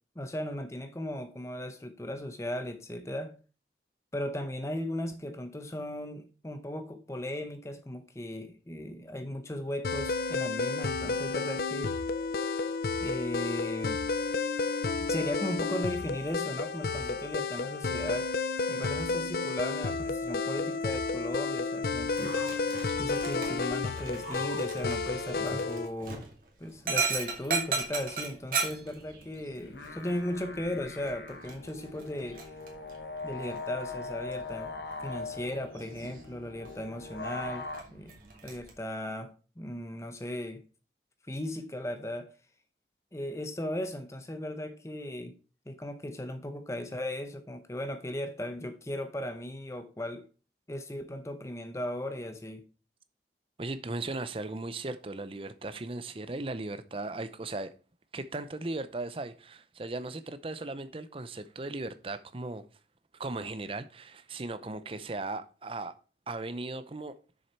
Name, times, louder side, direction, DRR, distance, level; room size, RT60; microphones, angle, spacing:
voice 1, 0.2-3.4 4.1-12.0 13.0-14.0 15.1-18.3 18.7-22.4 23.0-26.3 26.6-32.4 33.2-34.7 35.0-38.1 38.4-40.6 41.3-42.3 43.1-45.3 45.7-50.3 50.7-52.6, left 1 dB, 15° left, 0.7 m, -37 dB
sound 1, 9.8-25.9, left 4 dB, 55° left, 0.5 m, -31 dB
Dog, 22.1-38.7, right 4 dB, 50° right, 2.3 m, -38 dB
sound 2, 29.6-37.8, left 3 dB, 75° left, 1.4 m, -41 dB
voice 2, 53.6-57.7 58.1-62.7 63.2-66.0 66.3-67.2, right 2 dB, 30° right, 0.6 m, -37 dB
7.0 x 6.6 x 4.4 m
head